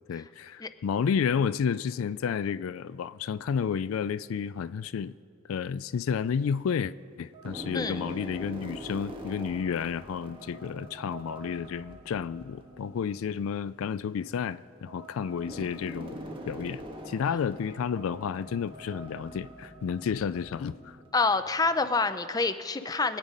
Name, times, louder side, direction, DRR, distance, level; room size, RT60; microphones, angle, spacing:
voice 1, 0.1-5.1 5.5-16.2 16.4-21.0, left 7 dB, 80° left, 0.3 m, -31 dB
sound 1, 6.0-6.8 7.3-21.9, right 1 dB, 25° right, 1.4 m, -44 dB
voice 2, 7.7-8.1 21.1-23.2, left 3 dB, 20° left, 0.5 m, -27 dB
24.0 x 8.9 x 5.2 m
head